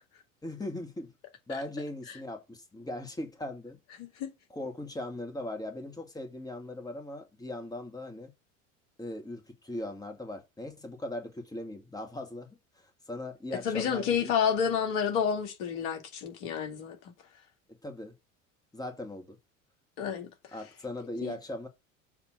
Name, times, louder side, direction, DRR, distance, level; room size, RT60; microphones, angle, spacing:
voice 1, 0.4-1.1 1.5-3.8 4.5-8.3 9.0-14.3 17.7-18.1 18.7-19.4 20.5-21.7, left 1 dB, 10° left, 2.1 m, -39 dB
voice 2, 4.0-4.3 13.6-17.1 20.0-20.3 21.2-21.4, left 7 dB, 65° left, 2.3 m, -30 dB
7.3 x 3.3 x 6.1 m
hypercardioid pair, 70°, 39 cm